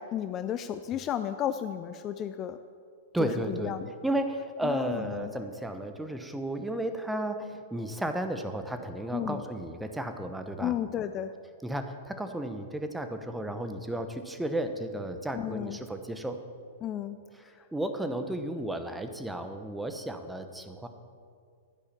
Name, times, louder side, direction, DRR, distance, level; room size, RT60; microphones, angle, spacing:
voice 1, 0.0-2.6 3.2-3.9 4.6-5.3 9.1-9.4 10.6-11.3 15.3-15.8 16.8-17.2, left 10 dB, 30° left, 11 dB, 0.4 m, -33 dB
voice 2, 3.1-3.7 4.0-10.7 11.6-16.4 17.7-20.9, right 1 dB, 5° right, 7 dB, 1.0 m, -33 dB
11.0 x 10.0 x 7.3 m, 2.2 s
figure-of-eight pair, 105°, 0 cm